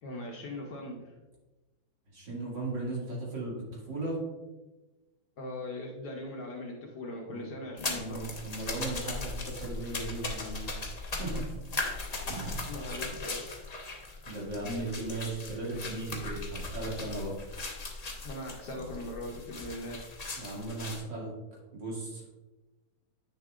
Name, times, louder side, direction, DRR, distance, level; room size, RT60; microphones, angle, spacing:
voice 1, 0.0-1.1 5.4-8.3 12.7-13.6 18.2-20.0, left 1 dB, 60° left, -1 dB, 1.3 m, -40 dB
voice 2, 2.1-4.2 7.3-7.5 7.9-10.7 11.1-11.5 12.3-12.6 14.3-17.4 20.4-21.3 21.7-22.2, right 2 dB, 60° right, -4 dB, 2.9 m, -37 dB
sound 1, 7.8-21.0, left 3 dB, 90° left, 0.3 m, -38 dB
9.2 x 6.7 x 2.4 m, 1.1 s
omnidirectional pair, 2.3 m